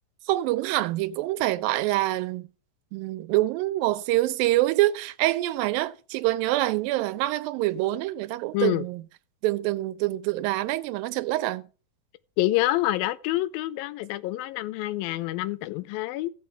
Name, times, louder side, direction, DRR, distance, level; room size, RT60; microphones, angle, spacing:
voice 1, 0.3-2.5 2.9-9.0 9.4-11.6, right 16 dB, 90° right, 2.4 m, -26 dB
voice 2, 8.5-8.8 12.4-16.3, left 16 dB, 90° left, 2.4 m, -27 dB
16.0 x 6.4 x 3.3 m
omnidirectional pair, 4.0 m